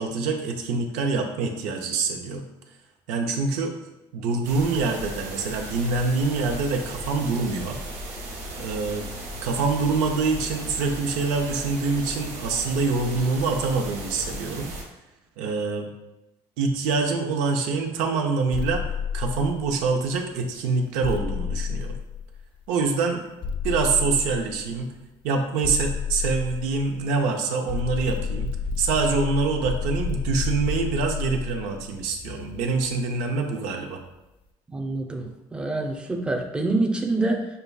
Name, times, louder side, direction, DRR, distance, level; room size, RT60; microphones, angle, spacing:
voice 1, 0.0-2.4 3.1-3.7 4.1-7.8 8.6-9.1 9.4-14.7 15.4-15.9 16.6-18.8 19.1-22.0 22.7-23.3 23.6-24.9 25.2-34.0, right 4 dB, 90° right, 3 dB, 0.5 m, -25 dB
sound 1, 4.4-14.8, right 1 dB, 70° right, 1.1 m, -36 dB
sound 2, 18.5-20.0 21.0-22.6 23.4-24.8 25.6-27.2 27.7-33.0, left 6 dB, 45° left, 0.3 m, -30 dB
voice 2, 34.7-37.5, right 2 dB, 10° right, 1 dB, 0.6 m, -26 dB
6.5 x 2.3 x 2.3 m, 0.97 s
cardioid pair, 100°, 12 cm